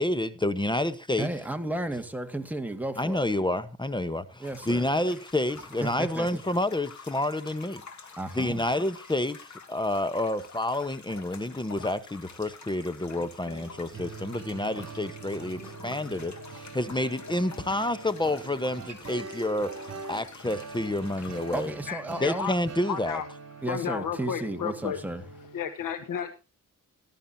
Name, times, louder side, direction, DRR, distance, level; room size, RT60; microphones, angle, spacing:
voice 1, 0.0-1.3 3.0-7.8 8.3-21.8 22.2-23.2, left 1 dB, 15° left, 1.0 m, -29 dB
voice 2, 1.2-3.2 4.4-4.9 5.8-6.4 8.2-8.7 21.5-22.5 23.6-25.2, right 1 dB, 5° right, 2.0 m, -33 dB
sound 1, 4.4-21.7, left 5 dB, 65° left, 3.1 m, -48 dB
sound 2, 13.4-25.7, right 3 dB, 50° right, 3.5 m, -43 dB
voice 3, 21.9-22.5 22.9-23.3 23.7-25.0 25.5-26.4, left 8 dB, 85° left, 1.3 m, -32 dB
19.0 x 12.0 x 2.8 m
cardioid pair, 95°, 32 cm